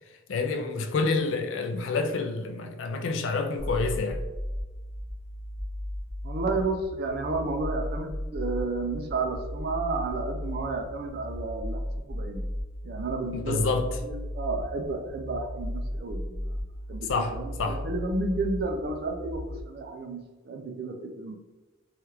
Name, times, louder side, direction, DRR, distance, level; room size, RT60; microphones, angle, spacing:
voice 1, 0.3-4.2 13.3-13.9 17.1-17.3 17.6-17.8, left 3 dB, 70° left, 0.4 m, -28 dB
sound 1, 3.6-19.6, equal, 25° right, 1.1 m, -35 dB
voice 2, 6.2-12.4 12.8-16.4 16.9-21.4, right 3 dB, 55° right, 0.4 m, -32 dB
3.2 x 2.4 x 2.9 m
head